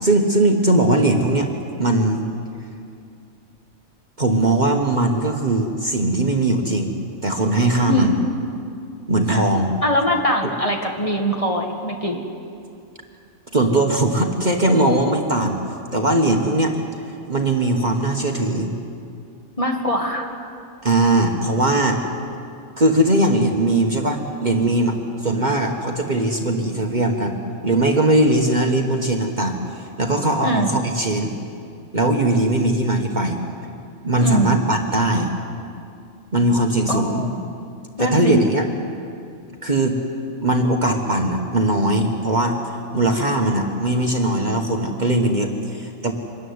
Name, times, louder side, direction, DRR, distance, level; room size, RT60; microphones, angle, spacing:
voice 1, 0.0-1.5 1.8-2.2 4.2-7.0 7.2-8.1 9.1-9.7 13.5-15.6 15.9-16.8 17.3-18.7 20.8-22.0 22.8-27.4 27.6-31.3 31.9-33.4 34.0-35.3 36.3-37.2 38.0-38.7 39.6-40.0 40.4-42.6 42.9-46.1, right 2 dB, 35° right, 2 dB, 1.5 m, -20 dB
voice 2, 7.8-8.2 9.3-9.5 9.8-12.2 19.6-20.3 30.4-30.7 34.2-34.6 36.9-37.5 38.0-38.4, equal, 25° left, 1 dB, 1.9 m, -22 dB
24.5 x 14.0 x 9.6 m, 2.5 s
omnidirectional pair, 1.4 m